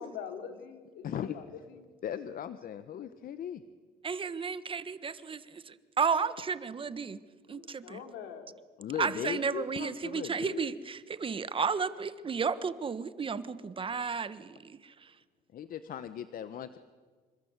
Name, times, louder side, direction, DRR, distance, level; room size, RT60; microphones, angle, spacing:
voice 1, 0.0-1.8 7.5-8.6 9.1-9.6, left 8 dB, 85° left, 6 dB, 4.2 m, -45 dB
voice 2, 1.0-1.3 2.0-3.6 8.8-10.7 15.5-16.8, left 9 dB, 55° left, 12 dB, 1.2 m, -38 dB
voice 3, 4.0-7.2 7.5-8.0 9.0-14.9, right 5 dB, 30° right, 13 dB, 1.4 m, -33 dB
27.5 x 25.0 x 8.2 m, 1.5 s
cardioid pair, 110°, 17 cm